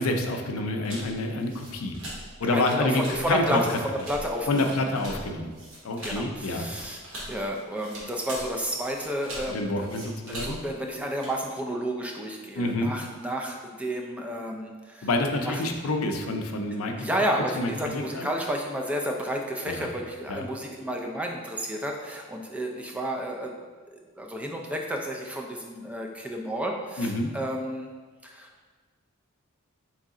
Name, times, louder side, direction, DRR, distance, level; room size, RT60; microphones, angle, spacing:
voice 1, 0.0-1.9 2.4-3.6 4.5-5.5 5.8-6.7 9.5-10.6 12.6-12.9 15.0-17.1 17.5-18.3 19.7-19.9 20.3-20.5 27.0-27.3, left 2 dB, 75° left, 4 dB, 0.5 m, -28 dB
sound 1, 0.8-11.4, right 1 dB, 65° right, 1.2 m, -42 dB
voice 2, 2.4-5.0 6.0-7.0 7.3-15.1 15.4-15.6 16.7-23.5 23.9-27.9 28.2-28.5, equal, 5° right, 1 dB, 0.3 m, -31 dB
3.8 x 3.2 x 3.6 m, 1.4 s
head